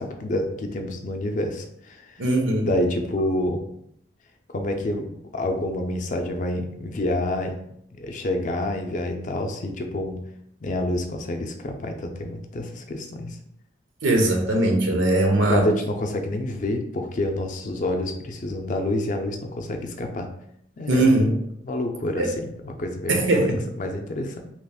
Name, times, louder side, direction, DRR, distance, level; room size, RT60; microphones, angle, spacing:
voice 1, 0.0-2.2 2.6-3.6 4.5-5.1 5.3-7.6 8.0-10.2 10.6-13.4 15.5-20.3 20.8-21.1 21.6-23.1 23.4-24.4, left 1 dB, 40° left, 4 dB, 0.4 m, -28 dB
voice 2, 2.2-2.7 14.0-15.7 20.9-21.4 22.2-22.4 23.1-23.6, right 1 dB, 90° right, 2 dB, 0.7 m, -20 dB
3.0 x 2.4 x 3.5 m, 0.72 s
head